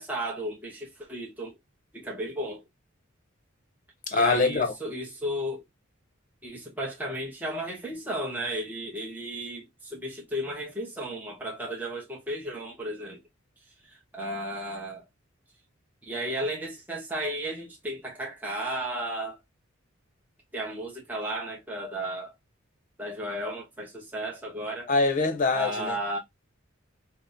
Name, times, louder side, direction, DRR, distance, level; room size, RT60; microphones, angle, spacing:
voice 1, 0.0-1.6 1.9-2.6 4.1-5.6 6.4-13.2 13.8-15.0 16.1-19.4 20.5-22.3 23.0-24.9 25.5-26.2, right 1 dB, 10° right, 0.9 m, -34 dB
voice 2, 4.1-4.7 24.9-26.0, left 3 dB, 40° left, 0.7 m, -24 dB
5.3 x 2.1 x 2.6 m
head